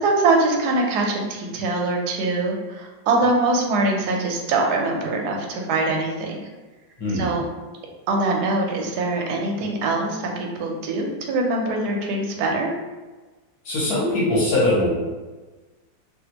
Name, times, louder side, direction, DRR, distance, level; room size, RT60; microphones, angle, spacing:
voice 1, 0.0-6.5 7.1-7.4 8.1-12.7, right 2 dB, 70° right, 1 dB, 1.0 m, -23 dB
voice 2, 7.0-7.3 13.6-14.9, left 1 dB, 60° left, -8 dB, 1.5 m, -21 dB
3.3 x 2.3 x 2.8 m, 1.2 s
omnidirectional pair, 2.0 m